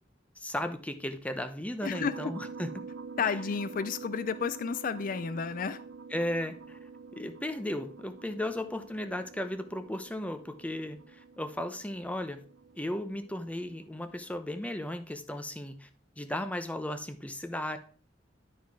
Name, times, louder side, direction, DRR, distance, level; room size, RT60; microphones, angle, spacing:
voice 1, 0.4-2.7 3.2-3.4 6.1-6.8 7.1-12.4 12.8-15.9 16.2-17.8, left 1 dB, 5° left, 9 dB, 0.7 m, -35 dB
voice 2, 1.8-2.3 3.2-5.8, left 6 dB, 45° left, 13 dB, 0.4 m, -32 dB
sound 1, 1.9-14.3, right 5 dB, 70° right, 0.6 m, -47 dB
11.5 x 4.4 x 4.7 m, 0.42 s
head